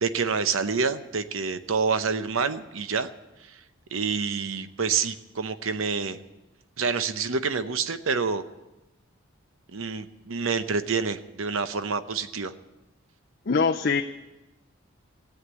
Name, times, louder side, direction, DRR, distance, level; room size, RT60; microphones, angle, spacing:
voice 1, 0.0-3.1 3.5-3.6 3.9-6.2 6.8-8.4 9.7-12.5, right 5 dB, 70° right, 11 dB, 0.8 m, -27 dB
voice 2, 13.5-14.0, left 5 dB, 45° left, 5 dB, 0.5 m, -22 dB
16.0 x 8.1 x 8.2 m, 1.0 s
head